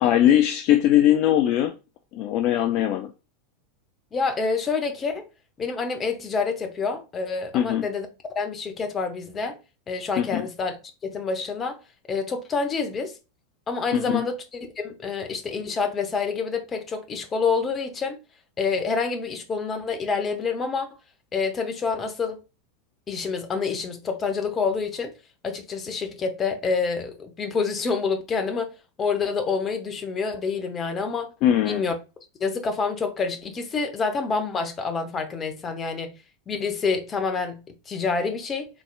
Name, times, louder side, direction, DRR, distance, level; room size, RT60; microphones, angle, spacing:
voice 1, 0.0-1.8 2.1-3.1 7.5-7.8 10.2-10.4 13.9-14.2 31.4-31.8, left 11 dB, 45° left, 0.3 m, -20 dB
voice 2, 4.1-5.3 5.6-8.1 8.3-9.6 9.9-10.8 11.0-11.8 12.1-13.2 13.7-18.2 18.6-20.9 21.3-22.4 23.1-25.1 25.4-28.7 29.0-31.3 31.6-31.9 32.4-36.1 36.5-38.7, left 4 dB, 25° left, 0.9 m, -27 dB
4.0 x 3.2 x 2.3 m
figure-of-eight pair, 85°, 0 cm